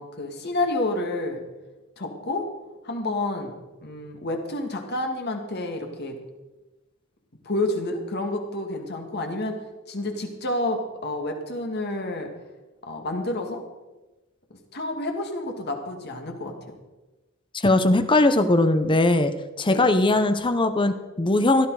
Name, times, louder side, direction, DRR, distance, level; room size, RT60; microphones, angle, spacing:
voice 1, 0.0-1.4 2.0-2.5 2.8-3.5 3.8-6.2 7.4-12.3 12.8-13.6 14.7-16.8 19.7-19.9, left 2 dB, 50° left, 3 dB, 2.1 m, -29 dB
voice 2, 17.5-19.3 19.6-21.7, left 2 dB, 25° left, 9 dB, 0.8 m, -20 dB
17.0 x 11.5 x 4.8 m, 1.1 s
head